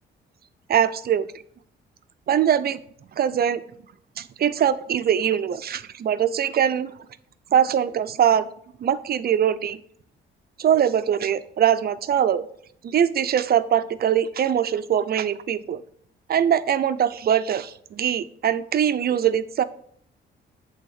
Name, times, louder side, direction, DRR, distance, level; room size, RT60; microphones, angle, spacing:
voice 1, 0.7-1.3 2.3-2.8 3.1-3.6 4.2-6.9 7.5-8.5 8.8-9.8 10.6-12.5 12.8-15.8 16.3-19.6, right 9 dB, 50° right, 13 dB, 0.6 m, -22 dB
8.3 x 3.6 x 6.5 m, 0.64 s
cardioid pair, 90°, 20 cm